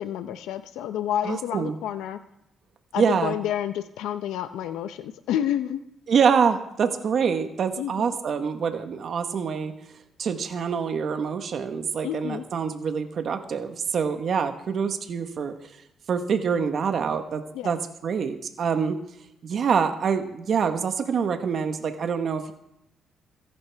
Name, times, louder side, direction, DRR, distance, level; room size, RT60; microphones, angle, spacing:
voice 1, 0.0-2.2 2.9-5.8 7.8-8.1 12.0-12.4 17.5-17.7, left 11 dB, 90° left, 10 dB, 0.7 m, -29 dB
voice 2, 1.2-1.7 3.0-3.3 6.1-9.7 10.2-15.5 16.1-19.0 19.4-22.5, right 6 dB, 55° right, 7 dB, 1.2 m, -25 dB
24.5 x 11.0 x 3.5 m, 0.83 s
cardioid pair, 90°, 0 cm